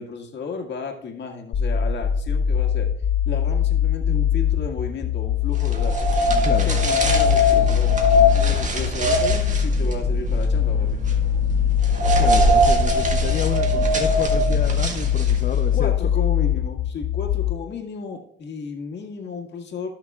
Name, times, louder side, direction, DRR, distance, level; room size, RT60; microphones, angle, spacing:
voice 1, 0.0-2.9 3.3-6.1 6.6-11.0 15.7-19.9, left 5 dB, 60° left, 1 dB, 1.9 m, -33 dB
sound 1, 1.5-17.5, left 9 dB, 80° left, 2.1 m, -22 dB
sound 2, 5.6-15.6, equal, 40° right, 1.6 m, -22 dB
voice 2, 12.2-15.9, left 7 dB, 45° left, 5 dB, 0.6 m, -30 dB
16.5 x 6.5 x 2.4 m, 0.70 s
cardioid pair, 90°, 20 cm